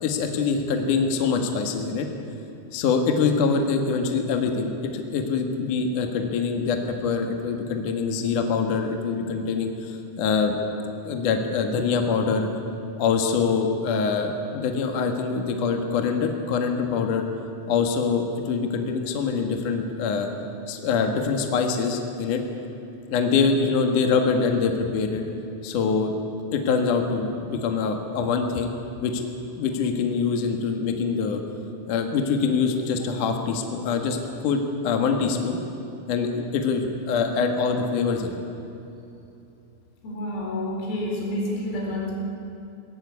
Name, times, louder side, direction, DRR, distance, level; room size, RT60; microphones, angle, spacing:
voice 1, 0.0-2.1 2.7-10.5 11.0-12.5 13.0-17.2 17.7-20.3 20.7-22.4 23.1-25.2 25.6-26.1 26.5-28.7 29.0-29.3 29.6-31.4 31.9-34.2 34.4-35.6 36.1-38.4, left 5 dB, 60° left, 4 dB, 2.4 m, -24 dB
voice 2, 40.0-42.2, left 1 dB, 80° left, -2 dB, 7.2 m, -29 dB
21.5 x 18.0 x 9.7 m, 2.8 s
omnidirectional pair, 5.9 m